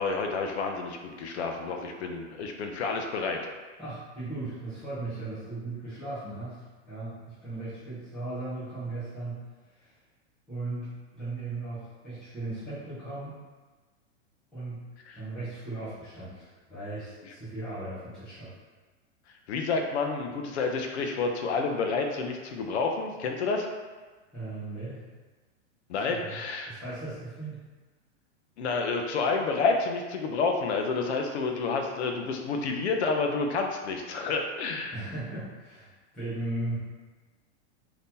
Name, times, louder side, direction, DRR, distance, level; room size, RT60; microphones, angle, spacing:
voice 1, 0.0-3.4 15.1-15.2 19.5-23.7 25.9-26.7 28.6-34.9, left 4 dB, 65° left, 3 dB, 0.5 m, -29 dB
voice 2, 3.8-9.4 9.7-9.9 10.5-13.4 14.5-14.8 15.1-18.5 24.3-25.0 26.0-26.4 26.7-27.6 34.9-36.8, right 2 dB, ahead, -14 dB, 0.4 m, -37 dB
2.8 x 2.6 x 3.6 m, 1.3 s
supercardioid pair, 175°, 35 cm